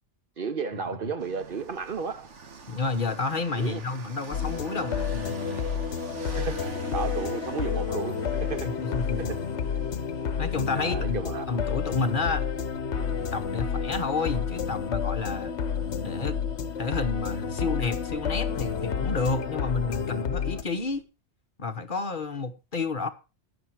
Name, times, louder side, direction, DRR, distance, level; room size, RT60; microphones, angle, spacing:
voice 1, 0.4-2.3 3.5-3.8 6.2-8.7 9.2-9.4 10.7-11.6 17.6-17.7, right 5 dB, 50° right, 0.9 m, -33 dB
sound 1, 1.2-21.0, right 4 dB, 80° right, 1.7 m, -46 dB
voice 2, 2.7-5.3 8.6-9.3 10.4-11.2 11.5-12.4 13.3-15.5 16.0-16.4 16.8-21.0 21.6-23.1, left 4 dB, 45° left, 1.3 m, -30 dB
sound 2, 4.3-20.6, left 6 dB, 70° left, 1.2 m, -30 dB
12.0 x 10.5 x 4.6 m
omnidirectional pair, 1.2 m